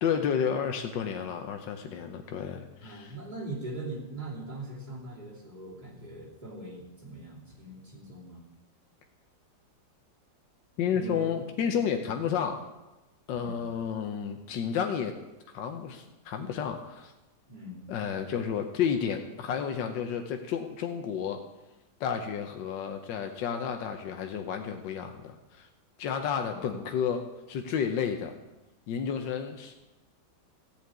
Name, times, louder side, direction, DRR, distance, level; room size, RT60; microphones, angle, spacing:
voice 1, 0.0-3.1 10.8-12.7 13.3-15.1 15.5-17.1 17.9-21.4 22.0-25.7 26.0-28.3 28.9-29.7, left 7 dB, 85° left, 5 dB, 1.5 m, -31 dB
voice 2, 2.8-8.4 10.9-11.3 11.7-11.8 13.4-13.6 17.5-17.9 26.4-26.7, right 2 dB, 25° right, -4 dB, 3.0 m, -41 dB
14.0 x 5.1 x 9.1 m, 1.0 s
omnidirectional pair, 1.9 m